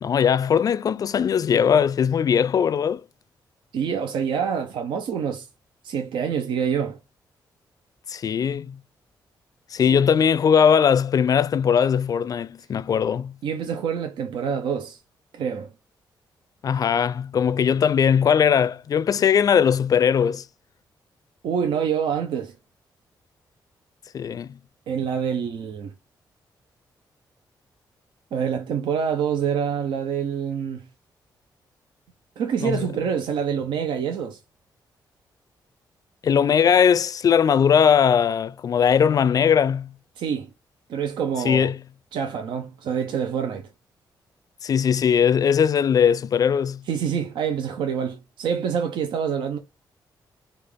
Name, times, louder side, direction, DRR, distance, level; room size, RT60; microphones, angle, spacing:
voice 1, 0.0-3.0 8.1-8.8 9.7-13.3 16.6-20.4 24.1-24.6 32.6-32.9 36.2-39.9 41.4-41.8 44.6-46.8, left 7 dB, 50° left, 0.4 m, -20 dB
voice 2, 3.7-5.5 5.8-7.0 9.8-10.0 13.4-15.0 15.3-15.7 21.4-22.5 24.9-25.9 28.3-30.9 32.4-34.4 40.2-40.5 40.9-41.7 42.1-43.7 46.9-49.6, right 7 dB, 85° right, 0.6 m, -26 dB
5.0 x 2.4 x 3.6 m
cardioid pair, 100°, 8 cm